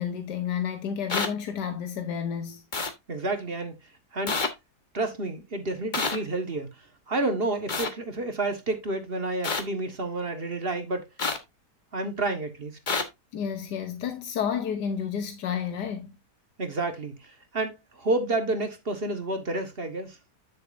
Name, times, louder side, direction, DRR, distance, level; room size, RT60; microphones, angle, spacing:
voice 1, 0.0-2.6 13.3-16.1, left 7 dB, 90° left, 1.6 m, -31 dB
sound 1, 1.1-1.3 2.7-2.9 4.3-4.5 5.9-6.2 7.7-7.9 9.4-9.6 11.2-11.4 12.9-13.0, left 4 dB, 30° left, 1.2 m, -27 dB
voice 2, 3.1-3.8 4.1-4.4 4.9-11.1 11.9-12.8 16.6-20.2, right 2 dB, 35° right, 1.7 m, -30 dB
10.5 x 6.6 x 2.6 m
omnidirectional pair, 1.7 m